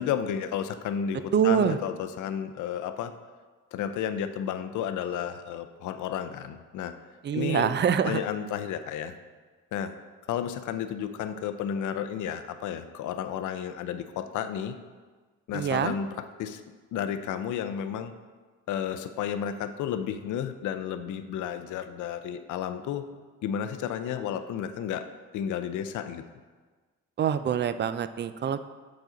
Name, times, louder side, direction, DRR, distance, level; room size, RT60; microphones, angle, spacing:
voice 1, 0.0-3.1 3.7-7.0 7.3-7.7 8.0-9.2 9.7-10.0 10.3-14.8 15.5-16.6 16.9-18.1 18.7-23.1 23.4-25.1 25.3-26.2, left 9 dB, 80° left, 10 dB, 0.5 m, -32 dB
voice 2, 1.3-1.8 7.2-8.2 15.5-15.9 27.2-28.6, right 8 dB, 35° right, 12 dB, 0.4 m, -25 dB
7.2 x 4.9 x 3.9 m, 1.4 s
cardioid pair, 90°, 30 cm